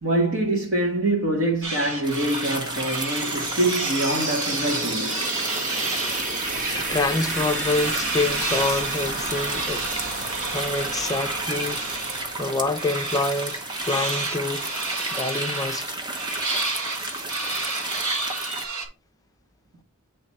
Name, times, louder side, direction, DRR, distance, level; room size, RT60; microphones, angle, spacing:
voice 1, 0.0-5.2, right 1 dB, 60° right, 1.5 m, -25 dB
sound 1, 1.6-6.2 6.6-12.3 12.7-18.9, right 2 dB, 75° right, 1.7 m, -31 dB
sound 2, 2.0-18.6, right 2 dB, 20° right, 0.9 m, -33 dB
sound 3, 2.6-14.3, right 2 dB, 40° right, 1.3 m, -32 dB
voice 2, 6.7-9.9 10.2-11.8 12.4-14.7 15.1-16.0, left 3 dB, 15° left, 0.5 m, -27 dB
8.6 x 3.2 x 4.2 m
head